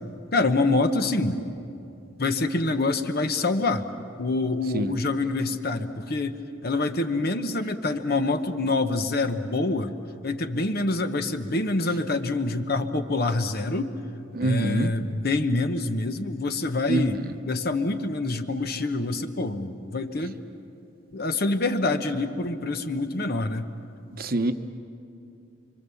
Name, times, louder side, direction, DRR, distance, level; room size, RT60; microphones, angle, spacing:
voice 1, 0.3-1.4 2.2-3.8 4.2-9.9 10.2-13.9 14.4-17.2 17.4-20.4 21.1-23.7, left 2 dB, 50° left, 8 dB, 1.1 m, -26 dB
voice 2, 14.3-14.9 16.9-17.1 24.1-24.5, right 1 dB, 45° right, 8 dB, 1.0 m, -25 dB
26.0 x 25.0 x 7.1 m, 2.6 s
head